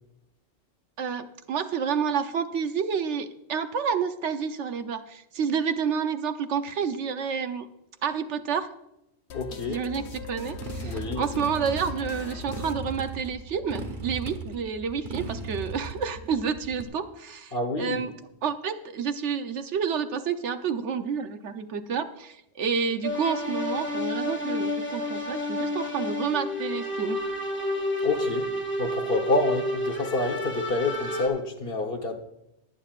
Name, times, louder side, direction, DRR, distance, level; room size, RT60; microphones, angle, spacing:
voice 1, 1.0-7.7 8.0-8.7 9.7-18.1 18.4-27.2, right 6 dB, 85° right, 1.1 m, -29 dB
sound 1, 9.3-13.6, left 6 dB, 75° left, 1.0 m, -41 dB
voice 2, 9.3-9.8 10.8-11.3 17.5-18.1 28.0-28.5 28.8-32.2, left 2 dB, 55° left, 1.4 m, -28 dB
Motorcycle, 10.0-16.8, right 3 dB, 45° right, 1.3 m, -37 dB
sound 2, 23.0-31.3, left 1 dB, 10° left, 1.7 m, -30 dB
21.5 x 9.1 x 2.4 m
omnidirectional pair, 1.2 m